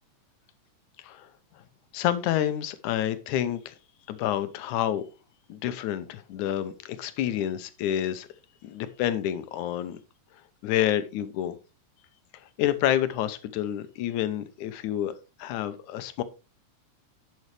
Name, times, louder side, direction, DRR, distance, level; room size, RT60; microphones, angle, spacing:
voice 1, 1.9-3.7 4.1-5.0 5.5-8.3 8.6-10.0 10.6-11.6 12.6-15.1 15.4-16.2, left 11 dB, 75° left, 2.3 m, -28 dB
11.0 x 7.2 x 3.3 m
omnidirectional pair, 3.6 m